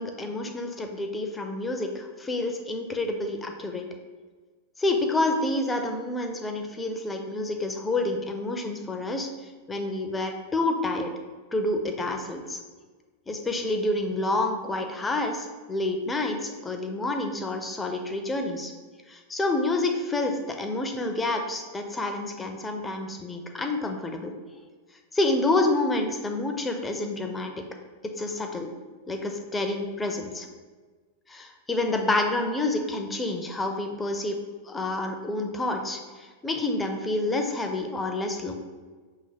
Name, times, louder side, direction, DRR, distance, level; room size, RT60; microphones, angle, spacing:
voice 1, 0.0-3.9 4.8-9.3 9.7-11.1 11.5-12.6 13.3-18.7 19.1-24.3 25.1-27.7 28.0-28.7 29.1-30.5 31.3-34.4 34.7-38.5, left 2 dB, 15° left, 5 dB, 0.5 m, -28 dB
5.8 x 3.0 x 2.7 m, 1.4 s
figure-of-eight pair, 90°, 0 cm